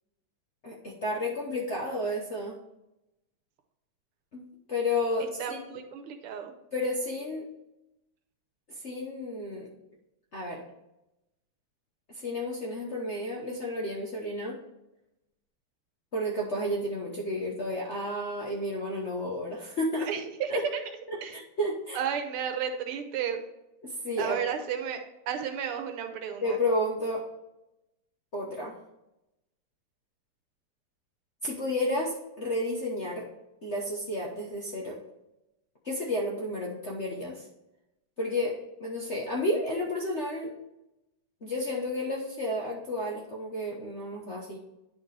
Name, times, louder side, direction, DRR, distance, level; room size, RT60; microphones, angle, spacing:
voice 1, 0.6-2.6 4.3-4.4 4.7-5.8 6.7-7.5 8.7-9.7 10.3-10.6 12.1-14.6 16.1-20.1 20.5-20.6 21.3-22.0 23.8-24.4 26.4-27.2 28.3-28.7 31.4-33.3 33.6-35.0 35.8-37.5 38.2-40.5 41.4-44.6, left 1 dB, 50° left, -2 dB, 0.8 m, -31 dB
voice 2, 5.2-6.5 20.0-20.8 21.2-21.4 21.9-23.4 24.2-25.0 25.3-26.4, right 8 dB, 85° right, 5 dB, 1.8 m, -33 dB
10.0 x 4.3 x 3.3 m, 0.94 s
omnidirectional pair, 2.4 m